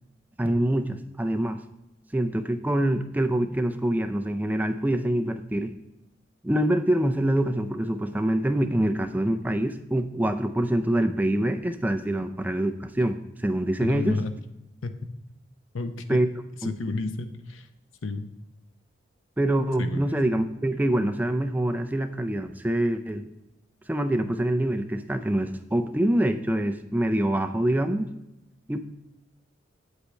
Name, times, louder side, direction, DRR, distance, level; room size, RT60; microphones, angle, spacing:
voice 1, 0.4-1.6 2.1-5.8 6.4-14.2 16.1-16.3 16.6-16.7 19.4-23.3 23.9-28.2 28.7-28.8, right 1 dB, 10° right, 7 dB, 0.4 m, -25 dB
voice 2, 13.8-14.3 14.8-15.1 15.7-16.2 16.6-17.7 18.0-18.3 19.8-20.2, left 3 dB, 80° left, 9 dB, 0.7 m, -31 dB
8.2 x 8.1 x 3.2 m, 0.91 s
head